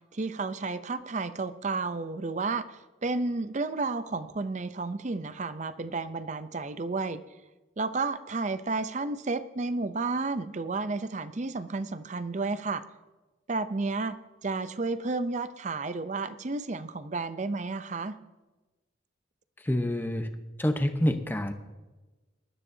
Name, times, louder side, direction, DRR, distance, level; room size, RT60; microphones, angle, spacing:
voice 1, 0.1-7.2 7.8-12.8 13.5-14.1 14.4-18.2, right 3 dB, 40° right, 13 dB, 0.5 m, -32 dB
voice 2, 19.6-20.3 20.6-21.5, left 1 dB, 10° left, 7 dB, 0.8 m, -27 dB
20.0 x 13.0 x 2.7 m, 1.2 s
head